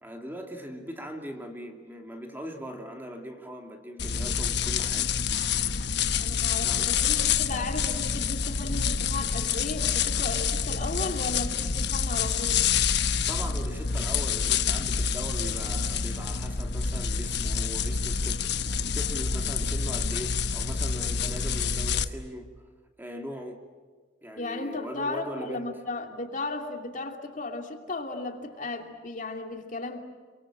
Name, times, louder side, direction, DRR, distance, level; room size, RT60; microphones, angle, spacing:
voice 1, 0.0-5.2 6.6-7.0 13.3-18.4 18.9-22.5 23.0-23.6 24.2-25.7, equal, 10° right, 3 dB, 2.7 m, -40 dB
sound 1, 4.0-22.0, left 6 dB, 65° left, 1.1 m, -27 dB
voice 2, 6.2-12.7 24.4-30.0, left 2 dB, 45° left, 3 dB, 2.8 m, -35 dB
28.0 x 24.5 x 7.5 m, 1.5 s
head